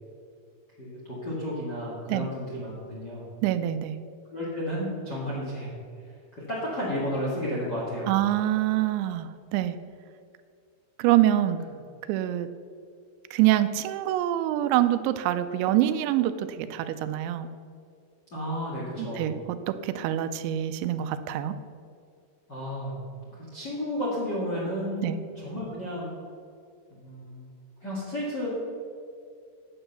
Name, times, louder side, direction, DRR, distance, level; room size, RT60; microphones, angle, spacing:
voice 1, 0.8-3.2 4.3-5.7 6.5-8.1 18.3-19.2 22.5-23.0 23.3-26.1 27.0-27.4 27.8-28.5, equal, 45° left, -6 dB, 1.4 m, -32 dB
voice 2, 3.4-4.0 8.1-9.8 11.0-11.6 12.1-12.5 13.3-17.5 19.0-21.6 25.0-25.2, right 13 dB, 85° right, 11 dB, 2.9 m, -25 dB
9.9 x 7.9 x 6.6 m, 2.3 s
omnidirectional pair, 5.2 m